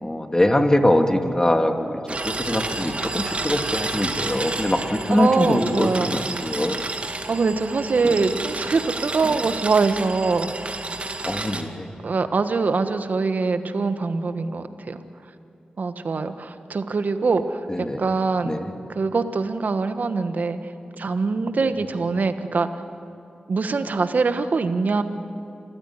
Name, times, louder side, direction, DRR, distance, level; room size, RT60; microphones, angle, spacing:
voice 1, 0.0-6.8 8.0-8.2 9.2-9.4 11.2-11.9 17.7-18.1 18.4-18.7 21.6-21.7, left 1 dB, 20° left, 4 dB, 2.5 m, -23 dB
sound 1, 2.1-11.6, right 2 dB, 45° right, 2.2 m, -30 dB
voice 2, 5.1-6.1 7.3-10.5 12.0-15.0 15.8-18.6 18.9-20.6 21.0-22.7 23.5-25.0, right 4 dB, 65° right, 9 dB, 1.4 m, -23 dB
28.0 x 15.0 x 9.7 m, 2.6 s
cardioid pair, 45°, 3 cm